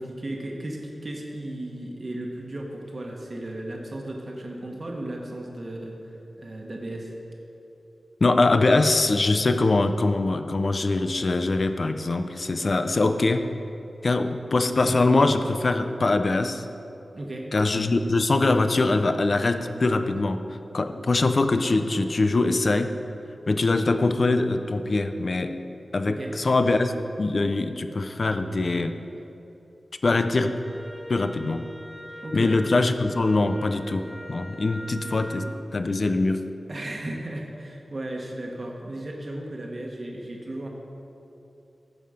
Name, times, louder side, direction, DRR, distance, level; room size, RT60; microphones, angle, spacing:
voice 1, 0.0-7.1 17.1-17.5 26.1-26.3 32.2-32.5 36.7-40.7, right 1 dB, 40° right, -1 dB, 1.2 m, -35 dB
voice 2, 8.2-13.5 14.0-16.7 17.5-20.4 20.7-22.9 23.5-25.5 25.9-26.9 27.2-28.9 30.0-30.6 31.1-31.6 32.3-35.5 35.7-36.4, left 2 dB, 45° left, 9 dB, 0.5 m, -23 dB
Wind instrument woodwind instrument, 30.6-35.5, equal, 10° right, 1.1 m, -41 dB
15.0 x 5.5 x 5.0 m, 2.9 s
wide cardioid pair, 120°, 0 cm